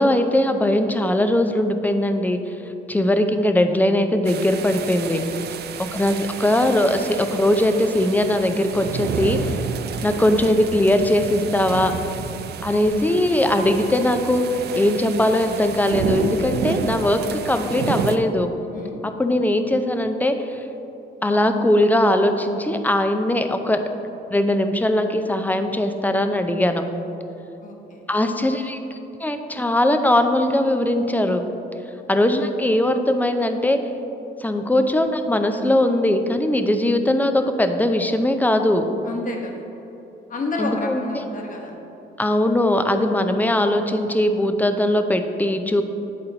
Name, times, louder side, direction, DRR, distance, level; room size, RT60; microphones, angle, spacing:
voice 1, 0.0-2.4 2.9-5.2 5.9-9.5 10.0-11.9 12.6-18.5 19.2-20.6 21.2-23.8 24.3-26.8 28.1-31.4 32.1-33.8 34.4-38.8 40.6-41.3 42.2-45.8, left 1 dB, 10° left, 7 dB, 0.4 m, -20 dB
sound 1, 4.2-18.2, right 6 dB, 55° right, 0.4 m, -30 dB
voice 2, 18.7-19.1 27.6-28.0 39.0-39.6 40.3-41.8, left 2 dB, 40° left, 1 dB, 1.1 m, -30 dB
8.3 x 4.2 x 3.9 m, 3.0 s
cardioid pair, 90°, 20 cm